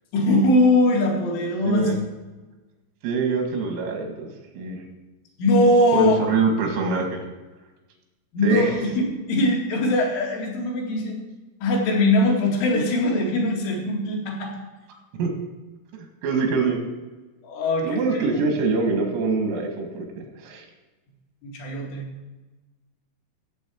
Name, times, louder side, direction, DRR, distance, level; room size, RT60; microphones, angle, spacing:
voice 1, 0.1-2.1 5.4-6.2 8.3-11.2 11.6-14.5 17.4-18.4 21.4-22.1, left 1 dB, 75° left, -2 dB, 4.6 m, -21 dB
voice 2, 3.0-4.3 4.5-4.8 5.9-7.2 8.4-8.7 15.1-15.3 15.9-16.8 17.8-20.6, right 3 dB, 90° right, 3 dB, 4.5 m, -24 dB
16.0 x 7.6 x 4.6 m, 1.2 s
omnidirectional pair, 5.7 m